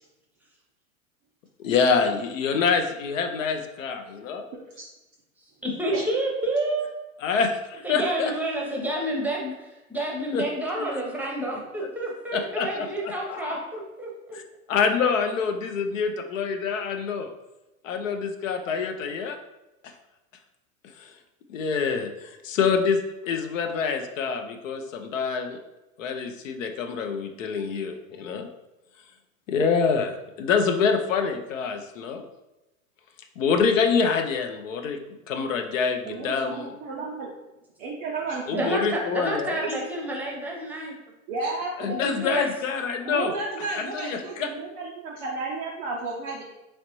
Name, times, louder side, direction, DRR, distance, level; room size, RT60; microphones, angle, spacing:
voice 1, 1.6-4.4 7.2-8.3 10.3-10.4 12.3-13.6 14.7-17.3 17.8-19.4 21.0-21.1 21.5-25.6 26.0-28.5 29.5-32.2 33.4-35.0 35.3-36.7 38.5-39.6 41.8-43.3 43.9-44.5, left 5 dB, 65° left, 5 dB, 0.6 m, -26 dB
voice 2, 5.6-6.9 7.8-14.4 38.5-41.0 41.9-42.5, right 1 dB, 5° right, -2 dB, 0.7 m, -29 dB
voice 3, 36.0-37.3 37.8-38.9 39.6-39.7 41.3-42.0 43.0-46.4, right 3 dB, 20° right, -3 dB, 0.3 m, -32 dB
4.0 x 3.1 x 3.0 m, 0.99 s
figure-of-eight pair, 95°, 42 cm